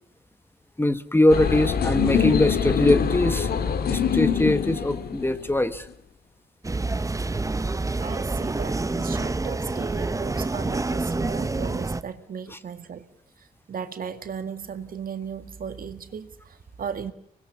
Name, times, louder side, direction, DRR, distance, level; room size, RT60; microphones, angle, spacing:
voice 1, 0.8-3.5 3.9-5.9 12.5-12.6, left 1 dB, 15° left, 12 dB, 1.5 m, -22 dB
sound 1, 1.3-5.8, left 7 dB, 70° left, 1.9 m, -24 dB
sound 2, 6.6-12.0, right 3 dB, 20° right, 0.9 m, -27 dB
voice 2, 8.0-13.1 13.7-17.1, right 7 dB, 60° right, 8 dB, 2.0 m, -36 dB
25.0 x 20.0 x 7.1 m, 0.68 s
supercardioid pair, 55°, 17 cm